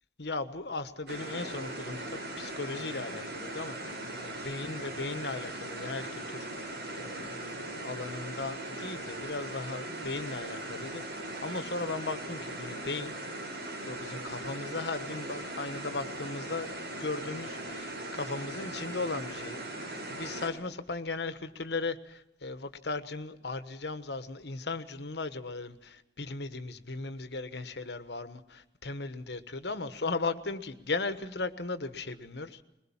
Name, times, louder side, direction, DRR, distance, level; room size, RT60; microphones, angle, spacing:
voice 1, 0.2-13.1 13.8-32.6, left 3 dB, 65° left, 11 dB, 1.4 m, -37 dB
sound 1, 1.1-20.5, right 1 dB, 65° right, 6.7 m, -39 dB
22.0 x 21.0 x 7.2 m, 0.90 s
head